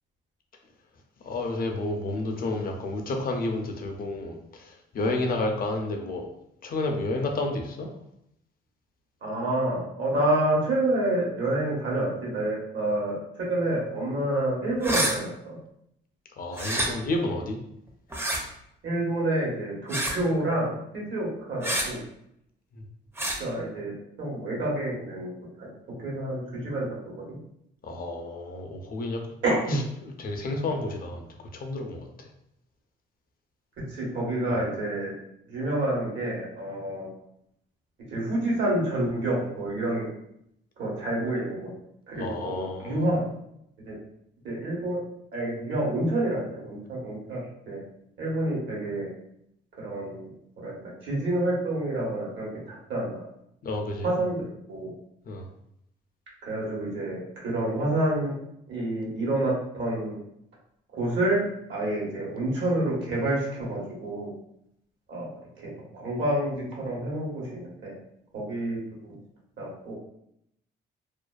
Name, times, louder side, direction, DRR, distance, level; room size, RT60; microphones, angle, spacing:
voice 1, 1.2-6.3 6.6-7.9 16.4-17.6 22.7-22.8 27.8-29.2 29.7-32.3 34.5-34.6 42.2-43.1 53.6-54.1 55.3-55.5, left 2 dB, 45° left, 3 dB, 0.4 m, -31 dB
voice 2, 9.2-15.6 18.8-22.0 23.4-25.3 25.6-25.7 26.0-26.9 27.3-27.4 29.4-29.8 33.9-35.1 35.5-37.1 38.1-40.1 40.8-41.7 42.1-43.3 43.8-43.9 44.4-45.0 45.3-47.8 48.2-49.1 49.8-50.3 50.6-50.7 51.0-53.2 54.0-54.9 56.4-58.3 58.7-60.2 61.0-61.4 61.7-64.3 65.1-65.3 65.9-67.9 68.3-69.1 69.6-70.0, right 1 dB, 70° right, -4 dB, 1.1 m, -28 dB
sound 1, 14.8-15.1 16.5-16.9 18.1-18.4 19.9-20.2 21.6-21.9 23.2-23.4, right 1 dB, 10° right, 0.5 m, -27 dB
2.5 x 2.2 x 2.3 m, 0.77 s
cardioid pair, 90°, 20 cm